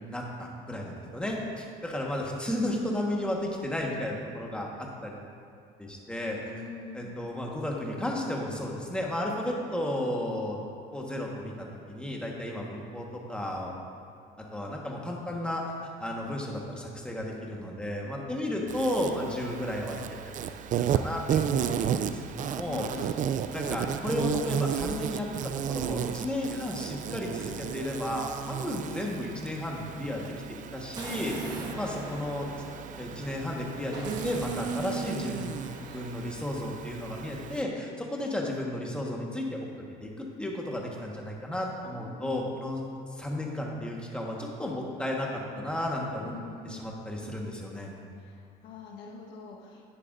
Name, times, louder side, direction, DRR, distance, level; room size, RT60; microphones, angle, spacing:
voice 1, 0.1-5.3 5.8-6.4 6.9-10.6 10.9-13.7 14.5-15.6 16.0-20.0 20.9-23.1 23.5-30.2 30.7-32.5 33.0-35.5 35.9-39.6 40.0-42.8 43.1-46.3 46.6-47.9, left 1 dB, 5° left, -2 dB, 1.4 m, -33 dB
voice 2, 6.5-7.2 22.7-23.2 41.9-42.5 46.3-47.0 48.2-49.8, left 4 dB, 85° left, -2 dB, 1.4 m, -44 dB
Insect, 18.7-37.6, right 8 dB, 50° right, 0.4 m, -33 dB
Explosion, 31.0-33.4 33.9-36.5, right 1 dB, 25° right, 1.6 m, -43 dB
10.5 x 9.8 x 2.6 m, 2.3 s
cardioid pair, 110°, 17 cm